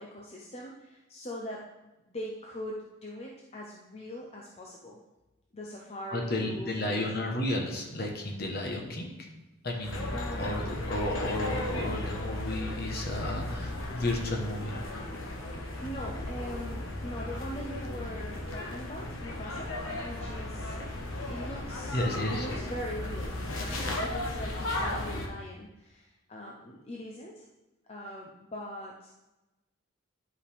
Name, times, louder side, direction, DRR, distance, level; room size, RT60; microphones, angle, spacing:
voice 1, 0.0-1.7 2.1-5.0 5.5-7.0 10.1-10.8 15.4-19.8 20.0-20.8 21.2-22.0 22.3-27.4 27.9-29.1, equal, 30° left, -2 dB, 0.7 m, -42 dB
voice 2, 6.1-9.1 9.6-14.8 21.9-22.5, left 1 dB, 50° left, 1 dB, 1.2 m, -32 dB
sound 1, 9.8-25.3, left 1 dB, 75° left, 1.2 m, -35 dB
11.0 x 5.0 x 3.5 m, 1.0 s
head